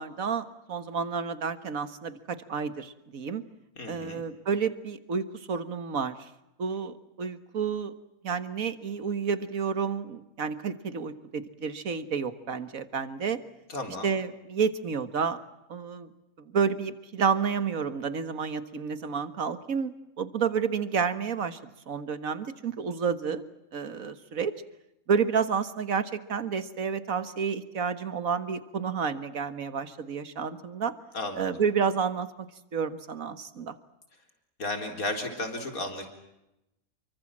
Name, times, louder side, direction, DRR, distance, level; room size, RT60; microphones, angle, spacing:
voice 1, 0.0-3.4 3.9-6.3 6.6-7.9 8.2-13.4 14.0-15.4 15.7-16.1 16.4-21.6 21.9-23.4 23.7-24.5 25.1-30.9 31.4-32.5 32.7-33.8, right 6 dB, 65° right, 12 dB, 1.9 m, -30 dB
voice 2, 3.8-4.2 13.7-14.1 31.1-31.6 34.6-36.1, left 2 dB, 70° left, 5 dB, 4.4 m, -34 dB
29.0 x 23.5 x 7.5 m, 0.90 s
omnidirectional pair, 1.5 m